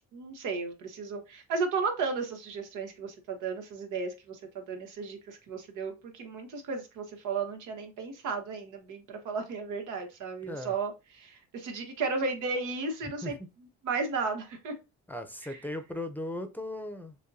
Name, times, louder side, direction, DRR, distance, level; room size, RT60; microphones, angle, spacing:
voice 1, 0.0-13.4 13.8-14.7 15.4-15.6, right 4 dB, 90° right, 1.1 m, -34 dB
voice 2, 10.4-10.8 13.2-13.5 15.1-17.2, left 1 dB, 5° left, 0.6 m, -37 dB
6.5 x 2.2 x 2.6 m
cardioid pair, 90°, 30 cm